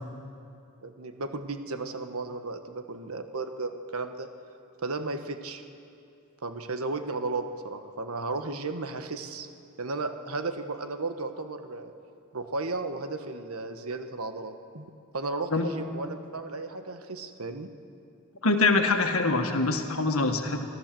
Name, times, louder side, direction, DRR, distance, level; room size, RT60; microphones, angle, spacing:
voice 1, 0.8-4.3 4.8-5.6 6.4-9.5 9.8-11.9 12.3-17.7, right 3 dB, 75° right, 8 dB, 1.3 m, -34 dB
voice 2, 18.4-20.6, left 3 dB, 70° left, 5 dB, 1.7 m, -24 dB
24.5 x 14.5 x 7.7 m, 2.6 s
head